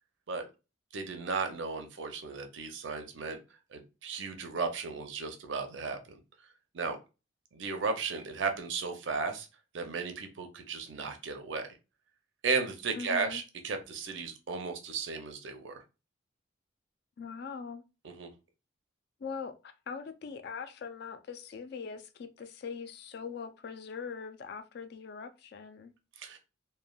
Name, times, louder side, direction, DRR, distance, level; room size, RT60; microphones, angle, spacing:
voice 1, 0.9-3.4 3.7-6.2 6.7-7.0 7.5-9.5 9.7-11.7 12.4-15.8 18.0-18.3 26.2-26.4, right 4 dB, 65° right, 0.5 m, -35 dB
voice 2, 12.9-13.4 17.2-17.8 19.2-25.9, left 5 dB, 50° left, 0.3 m, -42 dB
3.1 x 2.1 x 2.3 m
head